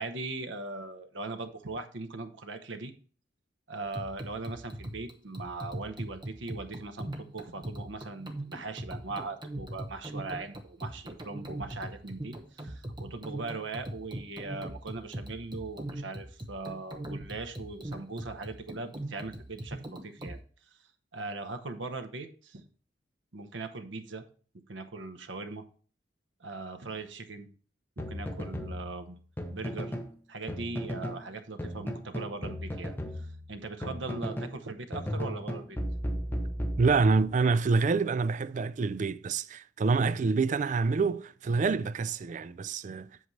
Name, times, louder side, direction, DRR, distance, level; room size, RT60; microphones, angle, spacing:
voice 1, 0.0-2.9 3.7-20.4 21.1-22.6 23.3-24.2 24.7-25.6 26.4-27.5 28.0-29.2 29.5-29.9 30.3-35.8, right 3 dB, 80° right, 0.9 m, -40 dB
sound 1, 3.9-20.4, right 1 dB, 25° right, 0.9 m, -40 dB
sound 2, 28.0-30.1 30.5-31.2 31.6-34.6 34.9-37.3, equal, 10° left, 0.8 m, -36 dB
voice 2, 36.8-43.1, right 4 dB, 40° right, 0.3 m, -27 dB
7.9 x 7.4 x 3.2 m
head